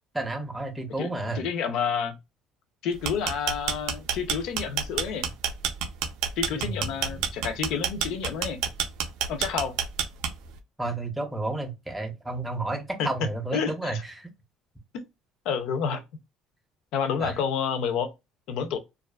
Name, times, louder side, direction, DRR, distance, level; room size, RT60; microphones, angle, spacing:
voice 1, 0.1-1.4 6.5-7.2 10.8-14.3 17.2-17.3, right 2 dB, 5° right, 0.5 m, -31 dB
voice 2, 1.0-2.2 2.8-5.3 6.4-8.6 9.3-9.8 13.0-13.1 13.5-14.0 14.9-15.0 15.5-16.0 16.9-18.1 18.5-18.8, left 7 dB, 65° left, 0.5 m, -29 dB
sound 1, 2.9-10.6, right 8 dB, 75° right, 0.4 m, -28 dB
2.4 x 2.3 x 2.2 m
cardioid pair, 145°, 0 cm